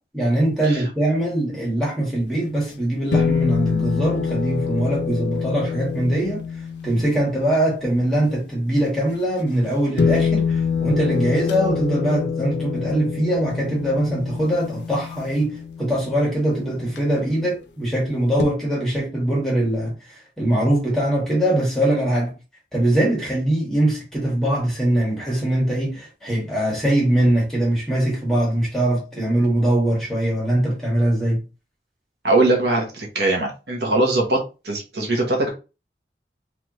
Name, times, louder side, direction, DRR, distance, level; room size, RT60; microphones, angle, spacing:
voice 1, 0.1-6.4 6.8-19.9 20.4-22.3 22.7-31.4, right 1 dB, ahead, 1.8 m, -22 dB
sound 1, 2.3-2.4 3.1-8.2 9.4-9.5 10.0-17.4 18.4-18.5, left 6 dB, 85° left, 0.6 m, -25 dB
voice 2, 32.2-35.5, right 2 dB, 70° right, 1.2 m, -21 dB
3.4 x 3.4 x 3.1 m
head